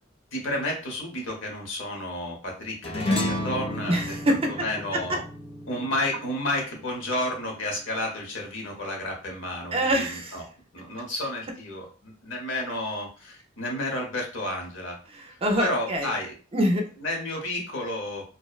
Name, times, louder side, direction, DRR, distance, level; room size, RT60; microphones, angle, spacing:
voice 1, 0.3-4.1 4.5-5.2 5.7-10.4 10.7-15.0 15.6-16.3 17.0-18.2, left 1 dB, 70° left, 0 dB, 0.8 m, -31 dB
sound 1, 2.8-7.5, left 1 dB, 30° left, 0.4 m, -32 dB
voice 2, 3.9-4.5 4.9-5.2 9.7-10.4 15.1-16.1 16.5-16.9, equal, 30° right, 3 dB, 0.4 m, -25 dB
2.6 x 2.0 x 2.3 m, 0.37 s
head